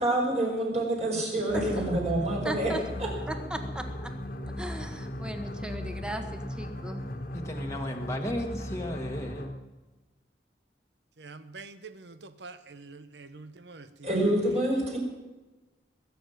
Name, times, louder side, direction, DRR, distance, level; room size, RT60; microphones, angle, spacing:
voice 1, 0.0-2.7 3.0-3.1 14.0-15.0, right 1 dB, 40° right, 5.1 m, -27 dB
sound 1, 1.5-9.7, left 1 dB, 50° left, 1.6 m, -37 dB
voice 2, 2.4-2.8 3.3-4.1 4.6-7.0, right 1 dB, 5° right, 1.4 m, -37 dB
voice 3, 7.3-9.5, left 1 dB, 15° left, 1.4 m, -35 dB
voice 4, 11.2-14.1, right 3 dB, 75° right, 1.0 m, -46 dB
21.5 x 7.1 x 9.2 m
head